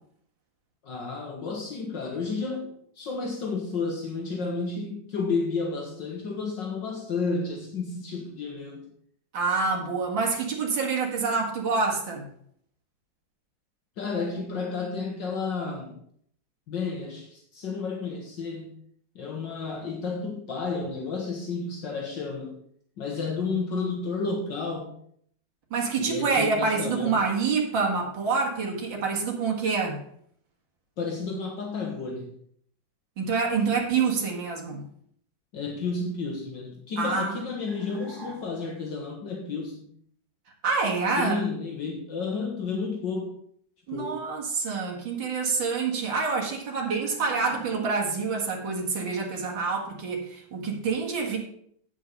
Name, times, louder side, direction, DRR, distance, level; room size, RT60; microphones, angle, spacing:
voice 1, 0.8-8.9 14.0-16.0 16.7-18.8 19.2-22.6 23.0-24.9 26.0-27.2 31.0-32.3 35.5-39.9 41.2-43.4 43.9-44.2, left 4 dB, 65° left, 1 dB, 1.9 m, -31 dB
voice 2, 9.3-12.3 25.7-30.0 33.2-34.8 37.0-37.4 40.6-41.4 43.9-51.4, right 4 dB, 70° right, -1 dB, 2.7 m, -27 dB
sound 1, 37.6-38.8 46.9-48.2, equal, 10° left, 3.3 m, -45 dB
8.5 x 7.3 x 5.4 m, 0.64 s
omnidirectional pair, 2.2 m